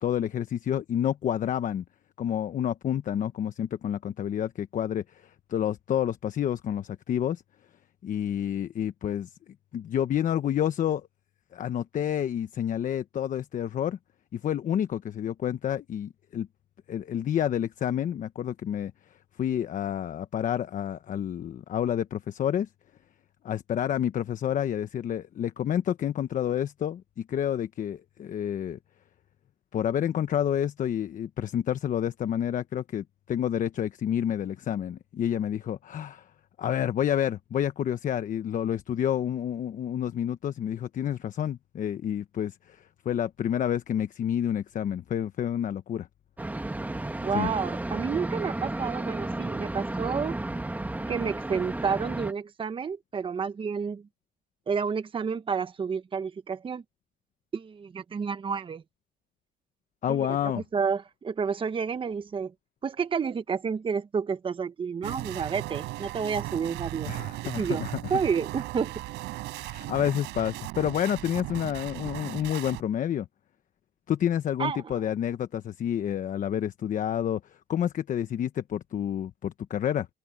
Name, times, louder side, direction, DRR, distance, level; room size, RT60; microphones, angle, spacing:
voice 1, 0.0-1.8 2.2-7.4 8.0-9.3 9.7-11.1 11.5-14.0 14.3-16.5 16.9-18.9 19.4-22.7 23.4-28.8 29.7-36.3 36.6-46.1 47.3-47.5 60.0-60.6 67.1-67.9 69.5-73.3 74.1-80.1, left 10 dB, 50° left, 1.1 m, -29 dB
sound 1, 46.4-52.3, right 2 dB, 10° right, 2.2 m, -33 dB
voice 2, 47.2-50.4 51.1-54.0 54.7-56.8 57.5-58.8 60.1-62.5 62.8-67.1 67.6-67.8 68.1-69.0 74.6-75.0, right 6 dB, 30° right, 1.1 m, -30 dB
sound 2, 65.0-72.8, right 19 dB, 90° right, 5.9 m, -37 dB
cardioid pair, 110°, 17 cm